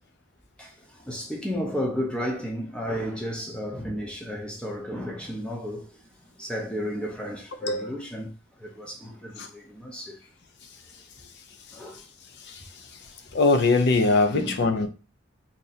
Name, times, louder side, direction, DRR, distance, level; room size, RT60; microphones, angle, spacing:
voice 1, 0.6-5.9 6.4-8.3 8.6-10.2 11.7-12.0 14.3-14.6, equal, 5° left, 0.5 m, -33 dB
voice 2, 7.6-7.9 9.4-9.5 12.5-12.6 13.3-14.9, left 3 dB, 60° left, 0.5 m, -22 dB
2.8 x 2.6 x 4.0 m
head